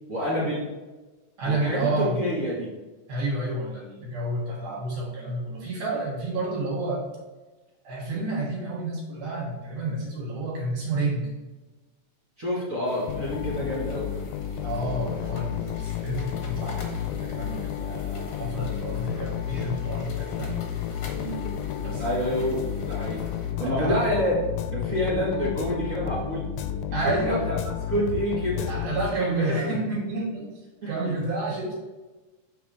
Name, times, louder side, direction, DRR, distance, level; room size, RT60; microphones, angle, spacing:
voice 1, 0.1-0.7 1.4-2.7 12.4-14.2 21.2-21.5 22.0-23.2 23.6-24.3 24.7-26.4 27.0-27.6 27.9-28.9 29.2-29.7 31.0-31.1, equal, 35° right, -7 dB, 1.3 m, -28 dB
voice 2, 1.4-2.2 3.1-7.0 7.9-11.3 14.6-20.6 21.8-22.0 23.6-24.0 26.9-27.4 28.5-30.5 30.9-31.7, right 2 dB, 75° right, -3 dB, 3.6 m, -30 dB
sound 1, 12.8-23.5, left 3 dB, 55° left, 1.7 m, -43 dB
sound 2, 13.1-29.5, left 10 dB, 85° left, 2.1 m, -32 dB
8.2 x 4.9 x 3.5 m, 1.2 s
omnidirectional pair, 3.7 m